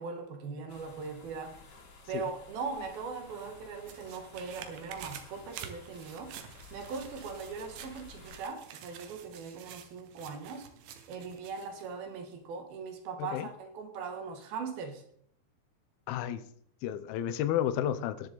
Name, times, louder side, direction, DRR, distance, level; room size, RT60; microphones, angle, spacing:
voice 1, 0.0-1.6 2.1-6.4 6.7-10.7 11.1-15.0, right 5 dB, 70° right, 3.1 m, -40 dB
sound 1, 0.7-8.4, left 3 dB, 50° left, 3.3 m, -54 dB
sound 2, 3.2-11.9 12.3-12.4, right 9 dB, 90° right, 3.3 m, -49 dB
voice 2, 16.1-16.4 16.8-18.3, left 10 dB, 75° left, 2.4 m, -32 dB
20.5 x 7.0 x 4.0 m
omnidirectional pair, 4.8 m